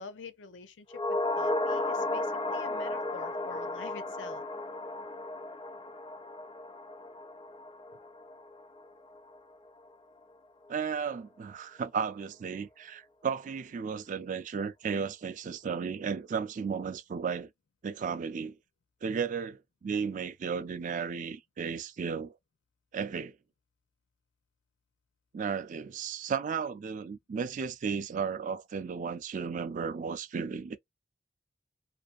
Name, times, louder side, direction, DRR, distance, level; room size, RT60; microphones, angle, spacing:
voice 1, 0.0-4.4, left 5 dB, 85° left, 0.5 m, -47 dB
sound 1, 0.9-9.4 9.7-9.8, left 2 dB, 25° left, 0.4 m, -34 dB
voice 2, 10.7-17.5 17.8-18.6 19.0-22.3 22.9-23.4 25.3-30.8, right 6 dB, 45° right, 0.3 m, -34 dB
2.5 x 2.4 x 2.4 m
head